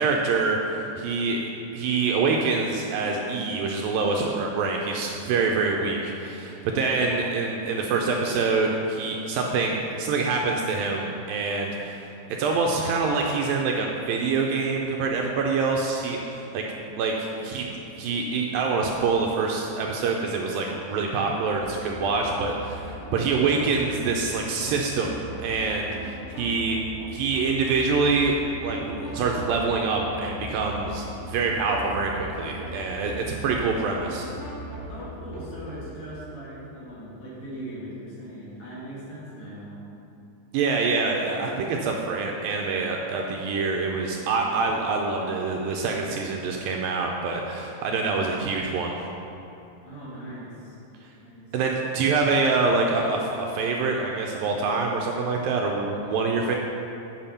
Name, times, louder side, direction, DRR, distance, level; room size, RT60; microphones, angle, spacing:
voice 1, 0.0-1.4 1.7-12.0 12.4-16.7 17.0-26.8 27.1-34.3 40.5-49.0 51.5-56.6, right 4 dB, 80° right, 0 dB, 2.2 m, -25 dB
sound 1, 21.5-35.7, equal, 85° left, 4.2 m, -39 dB
voice 2, 34.9-39.8 49.8-50.8 51.2-51.5, right 1 dB, 50° left, -9 dB, 3.2 m, -40 dB
8.8 x 5.8 x 5.6 m, 2.9 s
omnidirectional pair, 4.4 m